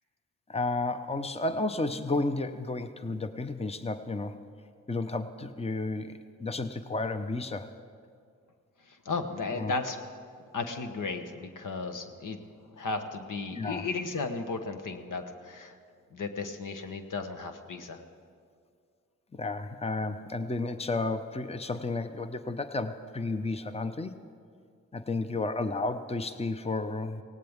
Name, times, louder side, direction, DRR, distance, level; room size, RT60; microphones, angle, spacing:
voice 1, 0.5-4.4 4.9-7.7 9.5-9.7 13.5-13.9 19.3-24.2 24.9-27.2, left 2 dB, 20° left, 10 dB, 0.8 m, -32 dB
voice 2, 8.9-10.0 10.5-12.4 12.7-15.7 16.1-18.0, left 4 dB, 70° left, 7 dB, 1.1 m, -35 dB
18.0 x 17.0 x 3.6 m, 2.2 s
supercardioid pair, 40°, 33 cm